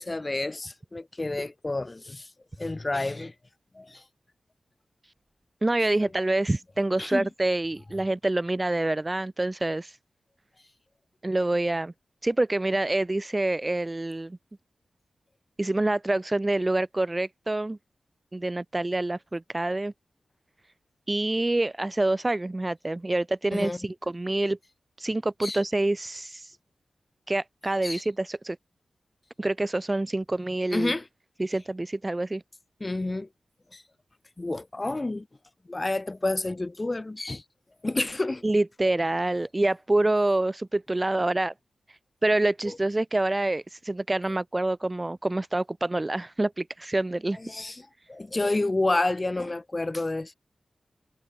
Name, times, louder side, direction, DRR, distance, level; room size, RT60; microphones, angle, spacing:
voice 1, 0.0-2.3 2.6-3.3 3.8-4.0 6.0-6.1 7.0-7.3 23.5-23.8 25.4-25.6 27.8-28.0 30.7-31.0 32.8-33.3 33.7-33.8 34.4-35.3 35.7-37.4 37.8-38.4 42.7-42.8 47.4-50.3, left 2 dB, 25° left, 1.8 m, -29 dB
voice 2, 5.6-10.0 11.2-11.9 12.2-14.4 15.6-17.8 18.3-19.9 21.1-24.6 25.0-26.5 27.3-28.6 29.4-30.9 31.4-32.4 38.4-41.5 42.2-47.4, right 2 dB, 20° right, 0.8 m, -26 dB
wide cardioid pair, 140°, 0 cm